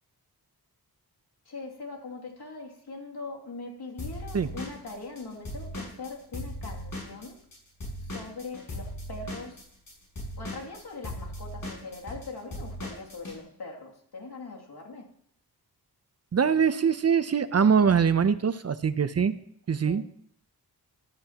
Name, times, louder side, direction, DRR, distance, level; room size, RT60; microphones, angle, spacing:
voice 1, 1.4-7.4 8.0-9.7 10.4-15.1 19.8-20.1, left 3 dB, 85° left, -2 dB, 2.7 m, -41 dB
Drum kit / Drum, 4.0-7.6 7.8-13.4, left 1 dB, 65° left, 5.9 m, -38 dB
voice 2, 16.3-19.3 19.7-20.1, right 6 dB, 40° right, 13 dB, 0.6 m, -23 dB
14.5 x 12.5 x 2.9 m, 0.67 s
wide cardioid pair, 95°, 38 cm